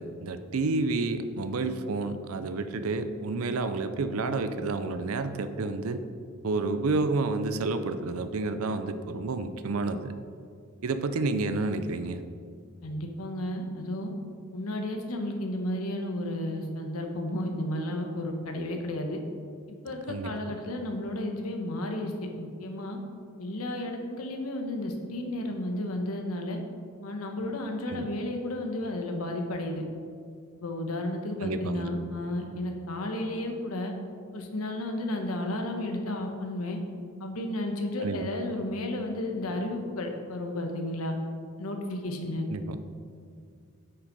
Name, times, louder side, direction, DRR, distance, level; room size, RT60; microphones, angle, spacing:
voice 1, 0.0-6.0 6.4-10.1 10.8-12.2 20.1-20.3 27.9-28.1 31.4-31.9 38.0-38.3 42.5-42.8, right 3 dB, 75° right, 10 dB, 0.5 m, -30 dB
voice 2, 12.8-14.1 14.5-19.2 19.8-22.1 22.4-23.0 23.4-26.6 27.0-29.8 30.6-33.9 34.3-36.8 37.2-41.2 41.6-42.5, left 1 dB, 90° left, 3 dB, 1.2 m, -32 dB
8.1 x 6.1 x 5.3 m, 2.2 s
head